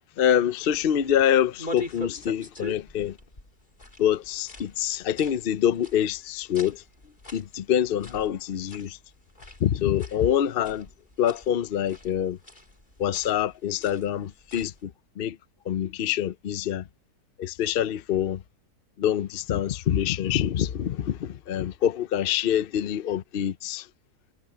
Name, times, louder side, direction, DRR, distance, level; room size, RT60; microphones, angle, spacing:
voice 1, 0.2-3.2 4.0-6.8 7.3-9.0 9.6-10.9 11.2-12.4 13.0-14.9 15.2-15.4 15.7-16.8 17.4-18.4 19.0-23.9, left 10 dB, 70° left, 0.5 m, -25 dB
sound 1, 0.6-14.8, left 1 dB, 25° left, 3.5 m, -44 dB
omnidirectional pair, 1.8 m